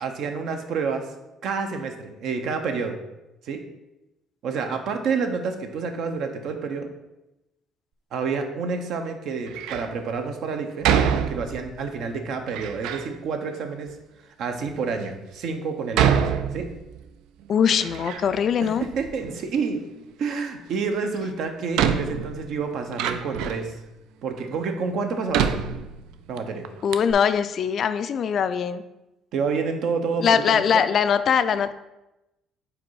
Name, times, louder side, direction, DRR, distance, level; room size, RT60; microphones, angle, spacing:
voice 1, 0.0-1.1 1.4-3.0 3.4-3.6 4.4-6.9 8.1-10.9 11.3-13.9 14.4-16.1 16.5-16.7 18.6-19.8 20.2-23.8 24.2-25.6 26.3-26.7 29.3-30.8, right 5 dB, 65° right, 5 dB, 0.8 m, -28 dB
Door, 9.5-9.9 10.8-11.8 12.5-13.1 13.9-14.0 14.7-14.8 15.9-17.1 17.4-18.5 18.8-19.6 21.0-21.1 21.7-23.7 24.4-24.5 25.3-26.4 26.6-26.7 26.9-27.1, right 8 dB, 85° right, 0.4 m, -26 dB
voice 2, 17.5-18.8 26.8-28.8 30.2-31.7, left 7 dB, 50° left, 12 dB, 0.3 m, -21 dB
5.0 x 4.2 x 4.7 m, 0.95 s
cardioid pair, 120°, 0 cm